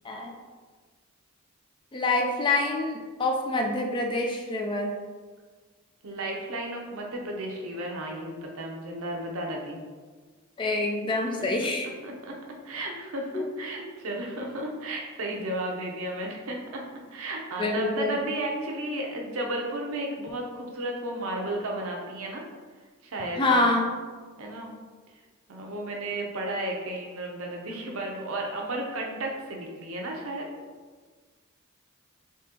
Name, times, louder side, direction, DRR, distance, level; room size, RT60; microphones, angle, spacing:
voice 1, 1.9-4.9 10.6-11.9 13.3-13.4 17.6-18.2 23.4-23.9, left 2 dB, 20° left, 2 dB, 0.3 m, -26 dB
voice 2, 6.0-9.8 12.0-12.4 12.6-16.8 17.1-22.4 23.0-23.7 24.4-24.7 25.5-30.5, right 1 dB, 75° right, 0 dB, 0.6 m, -33 dB
3.6 x 2.9 x 2.8 m, 1.4 s
head